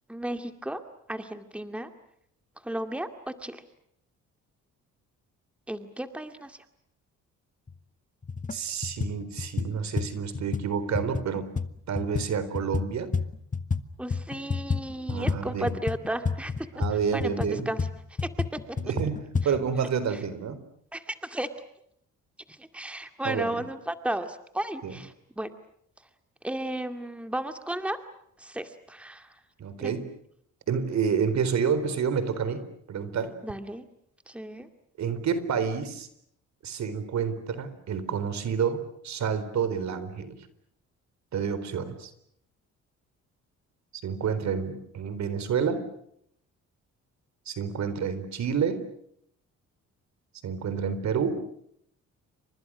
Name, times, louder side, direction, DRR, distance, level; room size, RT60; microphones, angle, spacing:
voice 1, 0.1-0.8 1.1-1.9 2.6-3.6 5.7-6.6 14.0-16.8 17.1-17.9 18.2-18.3 18.7-18.8 20.9-21.5 22.7-25.5 26.4-28.0 28.4-29.3 29.8-29.9 33.4-33.8 34.3-34.7, right 1 dB, 5° right, 7 dB, 2.2 m, -34 dB
sound 1, 7.7-7.8 8.2-8.6 8.8-13.8 14.1-19.5, left 5 dB, 25° left, 1.5 m, -31 dB
voice 2, 8.5-11.5 11.9-13.1 15.1-15.7 16.7-17.7 18.8-20.6 23.2-23.6 24.8-25.0 29.6-30.1 30.7-32.6 32.9-33.3 35.0-36.1 36.6-40.4 41.3-42.1 44.0-45.8 47.5-48.8 50.4-51.4, right 6 dB, 65° right, 13 dB, 4.1 m, -29 dB
30.0 x 25.5 x 6.3 m, 0.70 s
cardioid pair, 90°, 30 cm